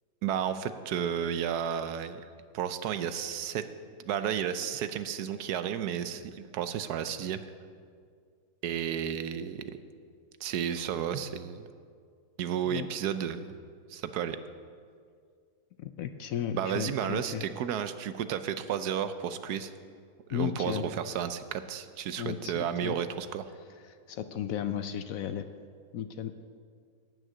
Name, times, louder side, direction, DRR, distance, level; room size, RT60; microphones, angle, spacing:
voice 1, 0.2-2.3 2.5-3.6 4.0-7.4 8.6-9.6 10.4-11.7 12.4-13.5 13.9-14.4 16.6-19.7 20.3-23.5, right 9 dB, 75° right, 11 dB, 1.2 m, -32 dB
voice 2, 15.8-17.4 20.3-20.9 22.2-22.9 23.9-25.5 25.9-26.3, left 9 dB, 70° left, 10 dB, 0.9 m, -34 dB
12.5 x 6.4 x 8.9 m, 2.1 s
omnidirectional pair, 1.7 m